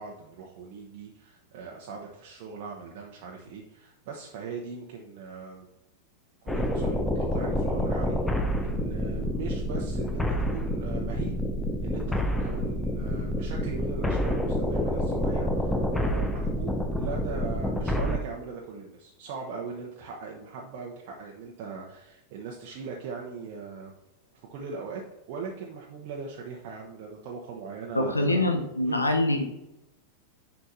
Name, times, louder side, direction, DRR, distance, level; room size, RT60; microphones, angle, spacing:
voice 1, 0.0-5.7 6.4-11.4 11.8-23.9 24.5-25.0 25.3-28.4 28.8-29.1, right 5 dB, 45° right, -1 dB, 0.9 m, -39 dB
sound 1, 6.5-18.2, equal, 5° left, 0.8 m, -28 dB
voice 2, 27.9-29.4, left 1 dB, 80° left, 5 dB, 0.8 m, -24 dB
9.9 x 5.7 x 2.8 m, 0.94 s
figure-of-eight pair, 90°, 0 cm